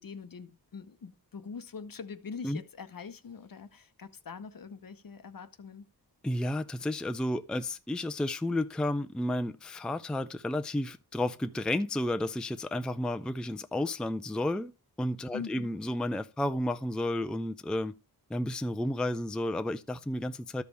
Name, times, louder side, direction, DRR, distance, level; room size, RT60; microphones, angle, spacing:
voice 1, 0.0-5.8 15.3-15.8, left 5 dB, 55° left, 0.8 m, -43 dB
voice 2, 6.2-14.7 15.0-17.9 18.3-20.6, left 1 dB, ahead, 0.4 m, -32 dB
13.0 x 5.3 x 3.3 m
wide cardioid pair, 80°, 40 cm